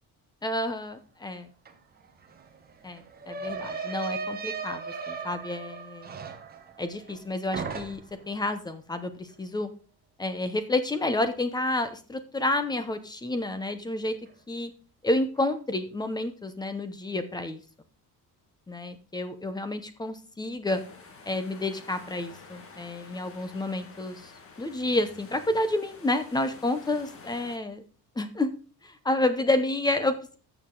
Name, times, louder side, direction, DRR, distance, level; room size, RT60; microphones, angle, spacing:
voice 1, 0.4-1.5 2.8-6.2 6.8-8.0 8.3-9.7 10.2-14.2 14.5-14.7 15.0-17.6 18.7-20.8 21.3-24.3 24.6-27.8 28.2-28.5 28.8-30.4, left 2 dB, 10° left, 10 dB, 0.8 m, -29 dB
sound 1, 1.7-1.8 2.0-7.2 7.5-8.3, right 5 dB, 25° right, 1.1 m, -37 dB
sound 2, 20.6-27.6, left 4 dB, 35° left, 1.6 m, -49 dB
12.5 x 6.9 x 3.8 m, 0.38 s
cardioid pair, 180°, 40 cm